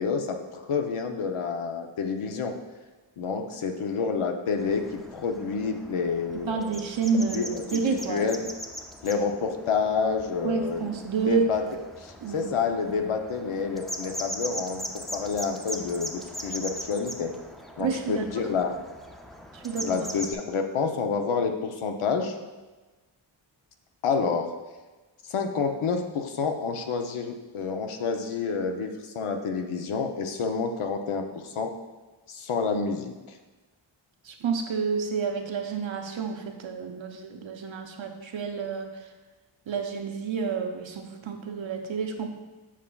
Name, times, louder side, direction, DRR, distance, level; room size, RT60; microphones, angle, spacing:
voice 1, 0.0-2.5 3.2-6.7 7.3-8.4 9.0-10.9 11.3-11.7 12.0-17.3 17.8-18.8 19.8-22.4 24.0-24.5 25.2-31.7 32.3-33.4, left 5 dB, 75° left, 5 dB, 0.7 m, -29 dB
sound 1, 4.6-20.3, equal, ahead, 0.4 m, -40 dB
voice 2, 6.5-8.3 10.4-11.5 12.2-12.5 17.8-18.4 19.5-20.0 34.2-39.1 39.7-42.3, right 4 dB, 65° right, 4 dB, 0.8 m, -29 dB
7.3 x 5.7 x 2.3 m, 1.2 s
wide cardioid pair, 75°, 50 cm